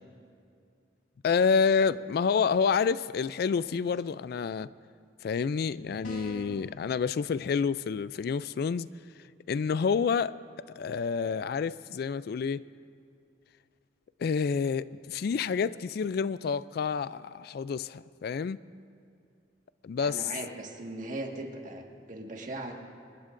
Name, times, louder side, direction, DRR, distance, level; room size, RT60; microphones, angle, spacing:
voice 1, 1.2-4.7 5.2-8.9 9.5-10.3 10.8-12.6 14.2-18.6 19.8-20.3, left 6 dB, 55° left, 0.3 m, -28 dB
sound 1, 6.0-6.6, right 1 dB, 80° left, 3.1 m, -43 dB
voice 2, 20.0-22.7, right 2 dB, 45° right, 1.7 m, -39 dB
25.5 x 20.5 x 2.6 m
head